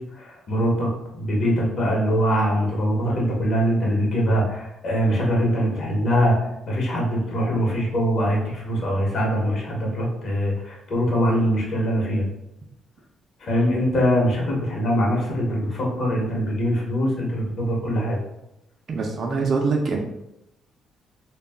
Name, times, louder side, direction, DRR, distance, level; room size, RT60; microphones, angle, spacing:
voice 1, 0.2-6.3 6.7-12.3 13.4-18.2, equal, 55° left, -2 dB, 0.9 m, -23 dB
voice 2, 18.9-20.0, right 4 dB, 50° right, 1 dB, 0.4 m, -23 dB
2.3 x 2.0 x 3.4 m, 0.85 s
cardioid pair, 90°, 0 cm